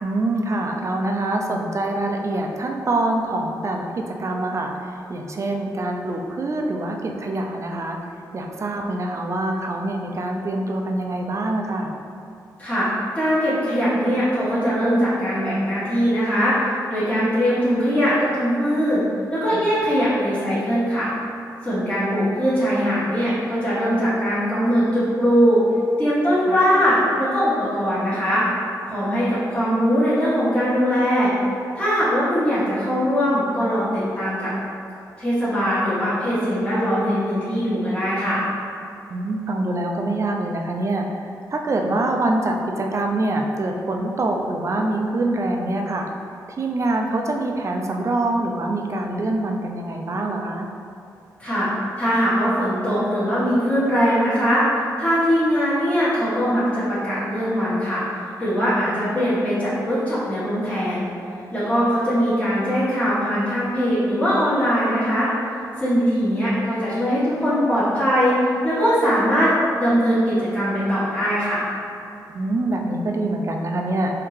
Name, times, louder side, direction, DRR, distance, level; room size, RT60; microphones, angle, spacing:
voice 1, 0.0-8.0 8.3-11.9 19.5-19.6 26.4-26.6 39.1-46.1 46.6-50.7 58.8-59.1 72.3-74.1, right 2 dB, 40° right, 2 dB, 0.4 m, -25 dB
voice 2, 12.6-12.9 13.1-16.6 16.9-19.0 19.3-21.1 21.6-25.6 26.0-28.4 28.9-31.3 31.8-34.5 35.2-38.4 51.4-51.7 52.0-54.6 55.0-58.0 58.4-61.1 61.5-65.3 65.8-68.4 68.6-69.5 69.8-71.6, equal, 15° left, -12 dB, 1.3 m, -21 dB
3.5 x 2.7 x 3.2 m, 2.5 s
cardioid pair, 65°, 7 cm